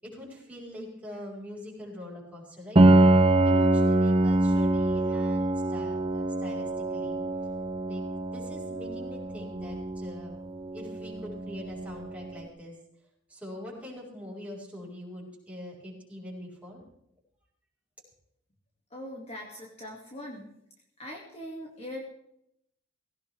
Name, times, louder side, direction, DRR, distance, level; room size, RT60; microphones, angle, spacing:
voice 1, 0.0-2.8 3.4-7.2 7.9-8.0 8.3-10.4 10.7-12.8 13.3-16.8, left 1 dB, 5° right, -4 dB, 5.6 m, -43 dB
Piano, 2.8-12.3, right 2 dB, 30° right, 0.9 m, -25 dB
voice 2, 18.9-20.5 21.0-22.1, left 1 dB, 35° left, -1 dB, 2.3 m, -41 dB
18.5 x 17.0 x 3.5 m, 0.77 s
head